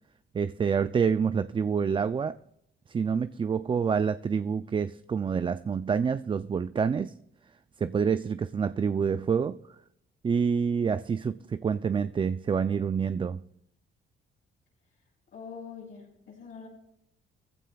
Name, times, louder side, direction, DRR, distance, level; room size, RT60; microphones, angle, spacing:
voice 1, 0.3-2.4 2.9-7.1 7.8-9.6 10.2-13.4, right 6 dB, 25° right, 12 dB, 0.4 m, -27 dB
voice 2, 15.3-16.7, left 6 dB, 70° left, -8 dB, 5.9 m, -44 dB
20.5 x 15.0 x 2.3 m, 0.74 s
cardioid pair, 90°, 20 cm